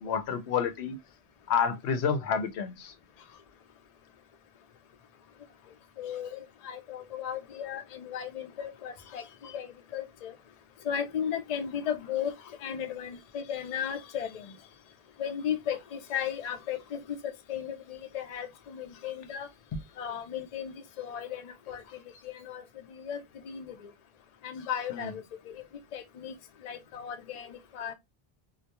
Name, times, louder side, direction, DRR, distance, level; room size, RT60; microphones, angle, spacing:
voice 1, 0.0-1.0 1.5-2.9 24.9-25.1, left 6 dB, 90° left, 0.9 m, -29 dB
voice 2, 6.0-10.3 10.8-12.3 12.6-14.5 15.2-19.5 20.0-21.8 22.2-22.6 22.9-23.9 24.4-25.6 25.9-26.3 26.6-27.9, left 8 dB, 50° left, 0.5 m, -36 dB
2.2 x 2.2 x 2.7 m
omnidirectional pair, 1.1 m